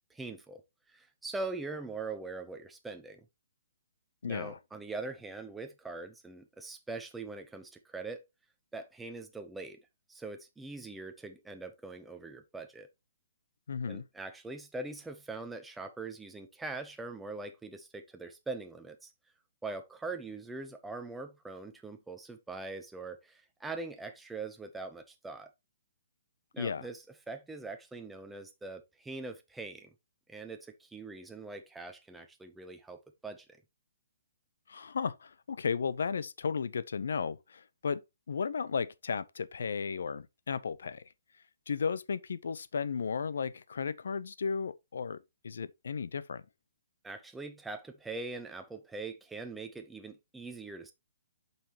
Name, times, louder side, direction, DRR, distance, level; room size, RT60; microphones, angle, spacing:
voice 1, 0.1-0.6 0.9-3.2 4.2-8.2 8.7-9.8 10.1-12.9 13.9-19.1 19.6-25.5 26.5-29.9 30.3-33.5 47.0-50.9, right 3 dB, 5° right, 0.7 m, -42 dB
voice 2, 4.2-4.6 13.7-14.1 26.6-26.9 34.7-38.0 38.3-41.0 41.7-46.4, left 6 dB, 75° left, 0.6 m, -34 dB
7.3 x 5.6 x 2.9 m
hypercardioid pair, 170°, 0 cm